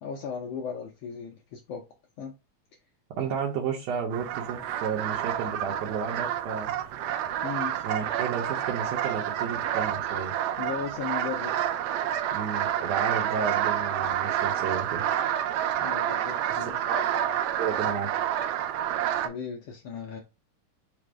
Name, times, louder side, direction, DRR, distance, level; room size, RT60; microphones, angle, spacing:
voice 1, 0.0-1.8 2.2-2.3 7.4-7.8 10.6-11.6 15.8-16.8 19.2-20.2, left 6 dB, 80° left, 1.4 m, -36 dB
voice 2, 3.2-6.7 7.8-10.3 12.3-15.0 16.8-18.1, right 6 dB, 70° right, 1.9 m, -32 dB
sound 1, 4.1-19.3, right 11 dB, 90° right, 1.4 m, -29 dB
5.1 x 2.0 x 4.5 m
omnidirectional pair, 3.5 m